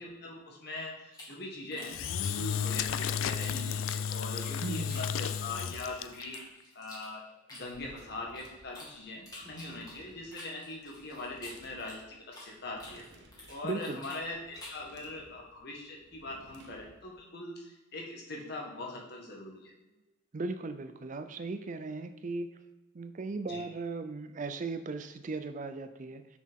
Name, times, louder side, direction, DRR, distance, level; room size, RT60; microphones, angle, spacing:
voice 1, 0.0-6.4 6.7-7.2 7.5-13.0 13.5-19.7 23.5-23.7, left 2 dB, 55° left, -1 dB, 1.6 m, -42 dB
sound 1, 1.1-3.6 3.8-5.7 6.1-8.9 9.3-12.5 12.8-14.9, left 2 dB, 20° left, 2.1 m, -50 dB
Engine / Drill, 1.8-6.4, left 7 dB, 80° left, 0.3 m, -33 dB
voice 2, 4.6-5.1 13.6-14.0 20.3-22.5 22.9-26.3, right 3 dB, 40° right, 10 dB, 0.5 m, -37 dB
sound 2, 7.6-17.2, right 1 dB, 60° right, 1.0 m, -59 dB
6.3 x 6.0 x 3.7 m, 1.1 s
head